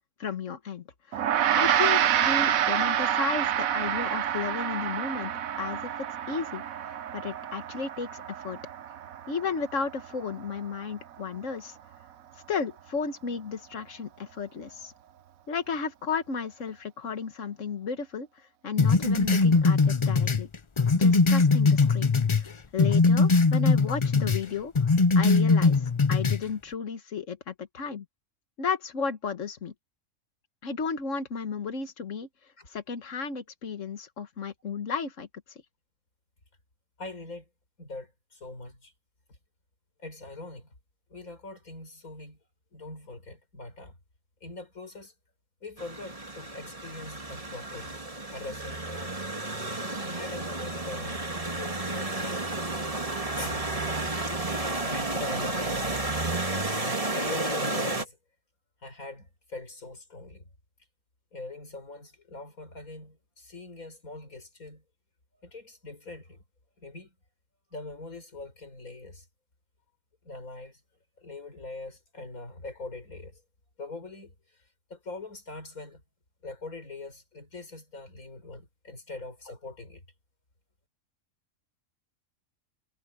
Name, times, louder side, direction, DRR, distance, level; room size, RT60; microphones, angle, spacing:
voice 1, 0.2-8.6 9.3-11.8 12.5-14.9 15.5-20.5 20.9-22.1 22.4-28.1 28.6-29.7 30.6-32.3 32.7-35.6, left 5 dB, 65° left, 1.7 m, -34 dB
Gong, 1.1-10.7, right 10 dB, 80° right, 1.3 m, -28 dB
sound 1, 18.8-22.5 22.8-24.4 24.7-26.4, left 4 dB, 30° left, 0.6 m, -21 dB
voice 2, 37.0-37.5 37.8-38.9 39.3-39.4 40.0-40.7 41.1-42.4 42.7-44.0 44.4-45.1 45.6-48.0 48.3-49.2 50.0-52.5 52.8-54.1 54.8-55.9 57.1-58.2 58.8-60.5 61.3-64.8 65.4-66.4 66.8-67.1 67.7-69.3 70.2-70.8 71.2-73.4 73.8-76.0 76.4-80.0, left 2 dB, 85° left, 5.4 m, -42 dB
sound 2, 45.8-58.0, right 2 dB, 25° right, 2.2 m, -32 dB
omnidirectional pair, 1.4 m